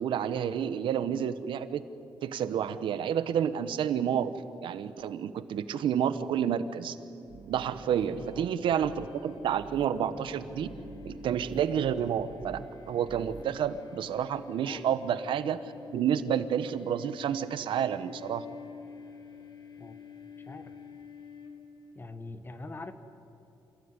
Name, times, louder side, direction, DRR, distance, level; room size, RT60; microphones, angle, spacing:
voice 1, 0.0-1.8 2.2-4.3 4.6-7.0 7.5-10.7 11.0-12.6 12.9-15.6 15.9-18.4, right 9 dB, 85° right, 13 dB, 1.0 m, -29 dB
sound 1, 7.3-13.8, right 5 dB, 50° right, 1.1 m, -48 dB
sound 2, 7.9-21.9, left 5 dB, 65° left, 2.8 m, -49 dB
voice 2, 14.6-15.0 19.8-20.0 20.4-20.8 21.9-22.9, left 2 dB, 25° left, 10 dB, 1.5 m, -43 dB
27.0 x 16.5 x 9.7 m, 2.9 s
cardioid pair, 130°, 8 cm